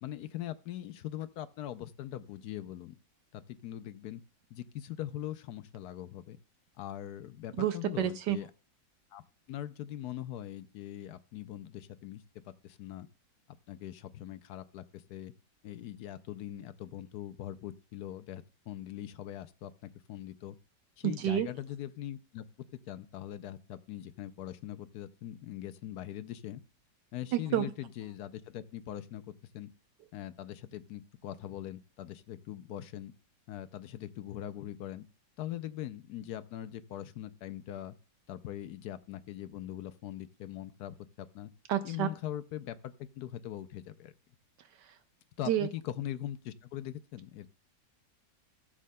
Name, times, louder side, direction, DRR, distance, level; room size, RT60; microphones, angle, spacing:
voice 1, 0.0-3.0 3.3-4.2 4.5-6.4 6.8-8.5 9.1-9.2 9.5-13.1 13.7-15.3 15.6-20.6 21.0-22.4 22.9-26.6 27.1-29.7 30.1-33.1 33.5-35.0 35.4-37.9 38.3-41.5 41.8-44.1 45.4-47.5, left 12 dB, 70° left, 1.0 m, -41 dB
voice 2, 7.6-8.4 21.0-21.5 27.3-27.6 41.7-42.1 44.6-45.0 45.5-45.7, right 11 dB, 75° right, 1.2 m, -30 dB
17.0 x 7.4 x 2.2 m
omnidirectional pair, 2.0 m